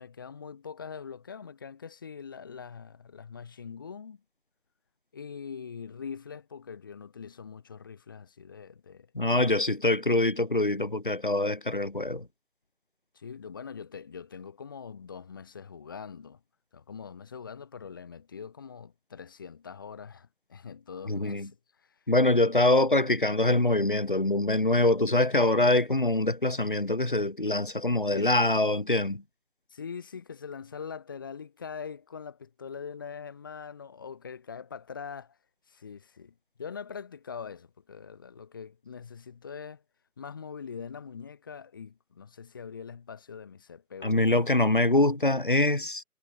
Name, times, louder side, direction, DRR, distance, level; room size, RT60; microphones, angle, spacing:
voice 1, 0.0-4.2 5.1-9.1 13.1-16.4 16.7-22.0 28.1-28.3 29.7-35.4 35.7-39.8 40.2-44.2, left 6 dB, 15° left, 3.0 m, -43 dB
voice 2, 9.1-12.3 21.1-21.5 22.1-29.2 44.0-46.0, left 2 dB, 35° left, 1.0 m, -24 dB
figure-of-eight pair, 175°, 44 cm